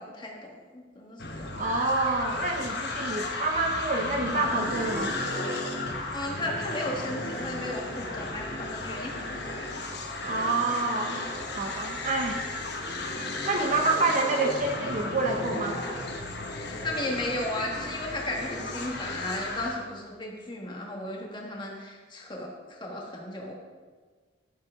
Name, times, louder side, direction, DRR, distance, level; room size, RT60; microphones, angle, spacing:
voice 1, 0.0-1.5 6.1-9.3 9.6-9.7 13.9-14.0 16.8-23.5, left 1 dB, 25° left, -1 dB, 1.4 m, -35 dB
sound 1, 1.2-19.8, left 2 dB, 60° left, 1.1 m, -34 dB
voice 2, 1.5-5.2 10.2-11.3 11.6-12.4 13.5-15.8, right 3 dB, 40° right, 2 dB, 0.7 m, -27 dB
10.5 x 7.4 x 3.6 m, 1.5 s
head